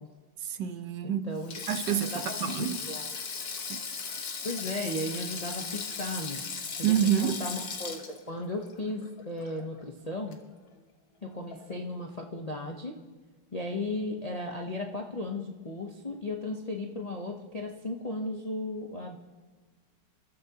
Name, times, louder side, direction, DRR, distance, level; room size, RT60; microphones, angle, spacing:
voice 1, 0.4-1.4 1.7-2.8 3.7-3.8 6.8-7.4, right 9 dB, 70° right, 1.3 m, -28 dB
voice 2, 1.0-1.6 2.1-3.1 4.4-6.4 6.8-10.4 11.2-13.0 13.5-19.2, left 2 dB, 40° left, 0.5 m, -35 dB
Sink (filling or washing), 1.4-9.8 10.1-10.3 11.5-11.8, left 5 dB, 55° left, 1.6 m, -37 dB
28.5 x 13.0 x 2.9 m
omnidirectional pair, 2.0 m